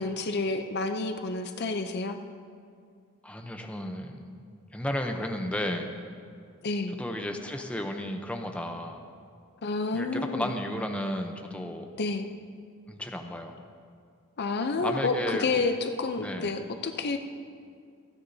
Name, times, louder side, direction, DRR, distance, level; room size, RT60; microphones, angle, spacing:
voice 1, 0.0-2.2 6.6-6.9 9.6-10.5 12.0-12.3 14.4-17.2, left 3 dB, 45° left, 7 dB, 0.6 m, -29 dB
voice 2, 3.2-4.4 4.7-5.9 6.9-9.0 9.9-11.9 12.9-13.6 14.8-15.6 16.2-16.5, left 1 dB, 5° left, 3 dB, 0.7 m, -33 dB
26.5 x 9.7 x 2.8 m, 2.2 s
head